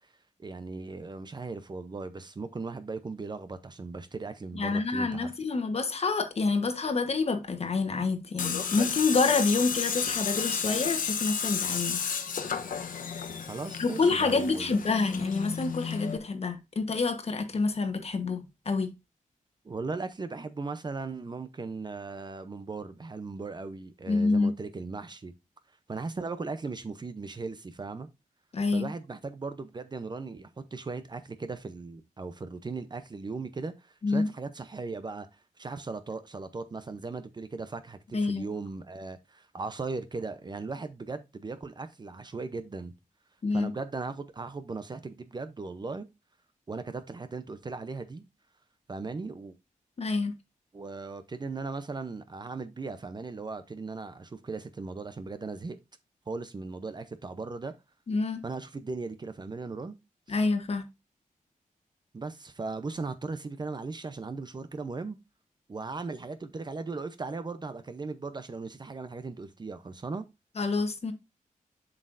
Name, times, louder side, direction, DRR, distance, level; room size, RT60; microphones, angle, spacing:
voice 1, 0.4-5.3 13.5-14.8 19.6-25.3 25.9-28.1 28.7-42.9 43.5-46.1 46.7-48.2 48.9-49.6 50.7-55.8 56.3-57.7 58.4-59.9 62.1-65.2 65.7-70.2, right 3 dB, 30° right, 0.7 m, -38 dB
voice 2, 4.5-12.0 13.8-18.9 24.1-24.5 28.5-28.9 34.0-34.3 38.1-38.5 43.4-43.7 50.0-50.3 58.1-58.4 60.3-60.8 70.6-71.1, left 4 dB, 50° left, 1.2 m, -27 dB
Tools, 8.4-16.2, left 6 dB, 80° left, 0.9 m, -32 dB
7.4 x 6.4 x 2.6 m
wide cardioid pair, 140°, 14 cm